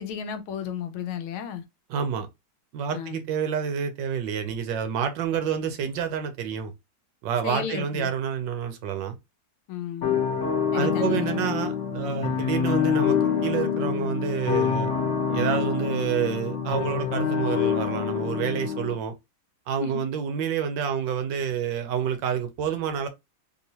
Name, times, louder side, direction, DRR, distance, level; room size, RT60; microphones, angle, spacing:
voice 1, 0.0-1.6 2.9-3.2 7.4-8.1 9.7-10.2 10.7-11.6 19.8-20.1, left 8 dB, 85° left, 1.5 m, -33 dB
voice 2, 1.9-2.3 2.7-6.7 7.2-9.2 10.7-14.9 15.3-19.1 19.7-23.1, right 7 dB, 75° right, 1.2 m, -28 dB
sound 1, 10.0-18.9, left 7 dB, 50° left, 0.9 m, -26 dB
3.5 x 2.8 x 2.7 m
omnidirectional pair, 2.2 m